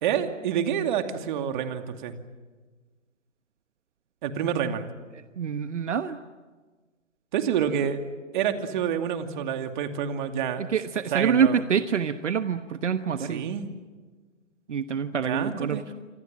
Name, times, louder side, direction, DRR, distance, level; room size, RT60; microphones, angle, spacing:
voice 1, 0.0-2.2 4.2-4.9 7.3-8.0 8.3-10.7 11.1-11.6 13.3-13.7 15.3-15.9, right 8 dB, 40° right, 6 dB, 2.6 m, -28 dB
voice 2, 5.4-6.2 10.6-13.5 14.7-15.8, right 7 dB, 70° right, 10 dB, 1.3 m, -26 dB
27.5 x 25.5 x 7.6 m, 1.3 s
figure-of-eight pair, 135°, 38 cm